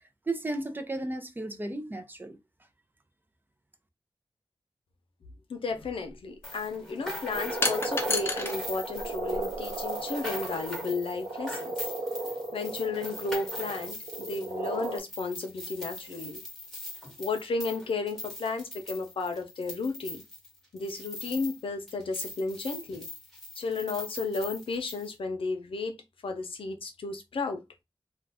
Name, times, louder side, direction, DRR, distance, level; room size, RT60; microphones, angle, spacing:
voice 1, 0.3-2.4, right 2 dB, 20° right, 0.5 m, -34 dB
voice 2, 5.5-11.9 12.5-16.4 17.2-20.2 20.7-23.1 23.6-26.0 26.2-27.6, left 3 dB, 80° left, 0.6 m, -33 dB
sound 1, 5.7-5.8 7.6-8.6 8.9-9.8, left 2 dB, 25° left, 0.6 m, -31 dB
sound 2, 6.4-21.6 21.9-25.1, left 1 dB, 5° left, 1.1 m, -41 dB
sound 3, 7.3-15.0, right 2 dB, 90° right, 1.0 m, -35 dB
2.4 x 2.3 x 3.3 m
wide cardioid pair, 100°, 9 cm